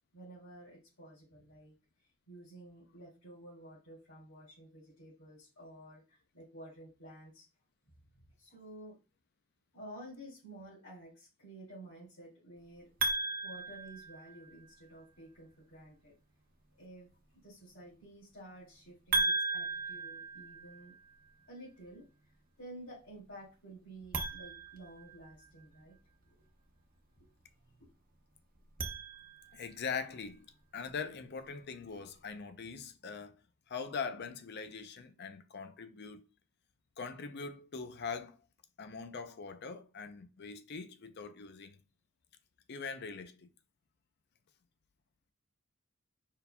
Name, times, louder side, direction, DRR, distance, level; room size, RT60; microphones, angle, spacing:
voice 1, 0.1-1.7 2.3-7.5 8.1-9.0 9.7-12.9 13.4-16.1 16.8-17.1 17.4-20.9 21.5-22.1 22.6-26.0 26.2-26.4 27.2-27.3, right 1 dB, 80° left, 2.9 m, -52 dB
sound 1, 13.0-14.7 19.1-21.1 24.0-25.6 28.5-29.8, right 3 dB, 40° right, 0.8 m, -36 dB
voice 2, 29.5-30.5 30.7-33.4 33.7-36.2 37.0-38.4 38.8-41.8 42.7-43.5, left 5 dB, 50° left, 0.5 m, -42 dB
5.3 x 4.6 x 2.2 m
head